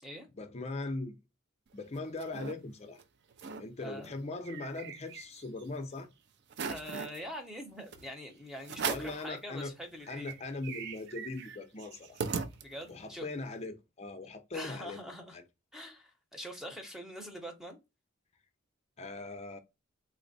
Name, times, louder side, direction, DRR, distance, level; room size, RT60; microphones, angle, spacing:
voice 1, 0.3-1.2 1.7-3.0 3.6-6.1 8.9-9.7 10.1-12.2 12.9-15.0 15.3-15.4 19.0-19.6, left 2 dB, 30° left, 0.5 m, -40 dB
sound 1, 1.7-2.5 3.0-3.1 3.3-3.6 4.0-5.6 6.0-6.1 6.5-7.2 7.9-8.1 8.6-9.2 9.7-9.8 10.0-13.0, right 5 dB, 55° right, 0.4 m, -39 dB
voice 2, 3.8-4.1 6.7-10.4 12.6-13.3 14.5-15.4 15.7-17.8, equal, ahead, 0.7 m, -44 dB
3.3 x 2.1 x 3.9 m
head